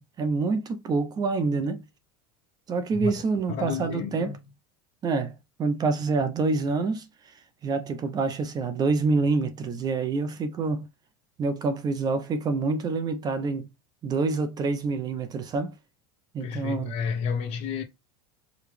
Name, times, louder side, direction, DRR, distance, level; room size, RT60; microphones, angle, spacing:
voice 1, 0.0-1.8 2.7-4.3 5.0-7.1 7.6-10.9 11.4-13.6 14.0-15.7 16.3-17.0, right 4 dB, 30° right, 0.8 m, -27 dB
voice 2, 3.5-4.4 16.4-17.8, left 6 dB, 45° left, 1.2 m, -31 dB
4.9 x 2.4 x 3.3 m
supercardioid pair, 130°, 14 cm